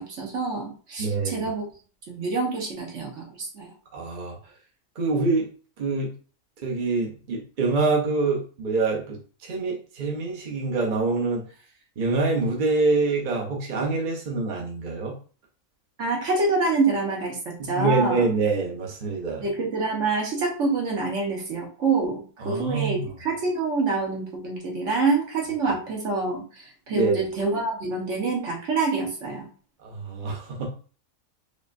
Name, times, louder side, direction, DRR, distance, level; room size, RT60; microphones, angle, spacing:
voice 1, 0.0-1.7 2.1-3.7 16.0-18.3 19.4-29.5, right 3 dB, 60° right, -1 dB, 1.4 m, -26 dB
voice 2, 1.0-1.5 3.9-4.4 5.0-5.5 5.8-6.1 6.6-11.4 12.0-15.1 17.6-19.4 22.4-23.0 26.9-27.2 29.8-30.7, right 3 dB, 45° right, -2 dB, 0.7 m, -25 dB
4.9 x 2.2 x 2.6 m, 0.39 s
omnidirectional pair, 1.5 m